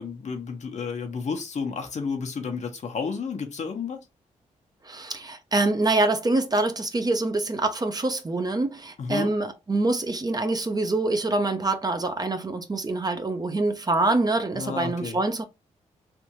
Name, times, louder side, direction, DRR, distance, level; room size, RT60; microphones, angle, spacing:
voice 1, 0.0-4.0 9.0-9.3 14.5-15.2, left 5 dB, 60° left, 1.0 m, -31 dB
voice 2, 4.9-15.4, right 2 dB, 30° right, 0.7 m, -25 dB
3.5 x 2.6 x 2.9 m
cardioid pair, 65°, 13 cm